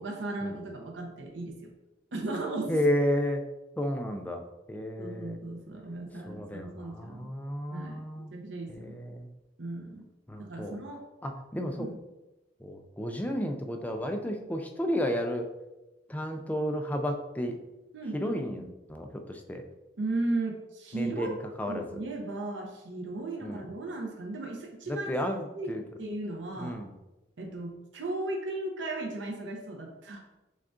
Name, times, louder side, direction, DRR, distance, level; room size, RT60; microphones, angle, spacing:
voice 1, 0.0-1.7 2.1-2.8 5.0-7.3 7.7-9.0 9.6-10.0 10.4-11.0 11.8-12.0 17.9-18.7 20.0-21.4 21.7-25.1 25.5-26.8 27.4-30.2, right 2 dB, 90° right, 1 dB, 0.6 m, -36 dB
voice 2, 2.7-3.4 3.8-4.4 4.7-5.4 6.3-8.3 8.7-9.3 10.3-10.8 11.2-11.9 12.6-15.5 16.1-17.6 18.1-18.6 18.9-19.6 20.9-22.0 23.4-23.6 24.9-25.8 26.6-26.9, equal, 10° left, 4 dB, 0.3 m, -32 dB
6.2 x 2.3 x 2.4 m, 1.0 s
head